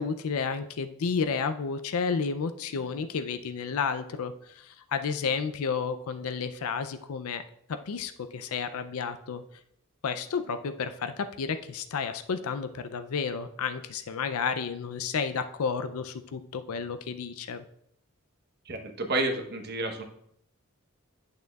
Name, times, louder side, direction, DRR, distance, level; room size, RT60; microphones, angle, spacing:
voice 1, 0.0-7.4 7.9-9.4 10.0-17.6, left 5 dB, 85° left, 9 dB, 0.5 m, -31 dB
voice 2, 18.7-20.0, right 2 dB, 50° right, 4 dB, 1.0 m, -30 dB
8.7 x 6.5 x 2.3 m, 0.70 s
head